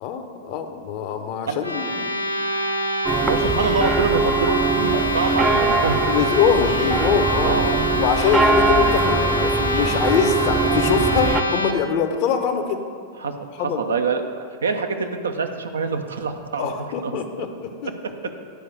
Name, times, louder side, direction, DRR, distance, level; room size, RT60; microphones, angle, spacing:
voice 1, 0.0-2.1 4.9-5.0 6.1-7.6 7.9-12.8 13.6-13.8 16.6-17.9, left 7 dB, 45° left, 7 dB, 0.8 m, -23 dB
sound 1, 1.6-11.7, equal, 80° left, 0.6 m, -26 dB
sound 2, 3.1-11.4, right 3 dB, 15° right, 0.4 m, -22 dB
voice 2, 3.3-6.0 7.4-7.8 13.2-16.7 17.0-17.1, right 4 dB, 70° right, 6 dB, 0.6 m, -25 dB
9.2 x 4.7 x 7.4 m, 2.1 s
figure-of-eight pair, 90°, 0 cm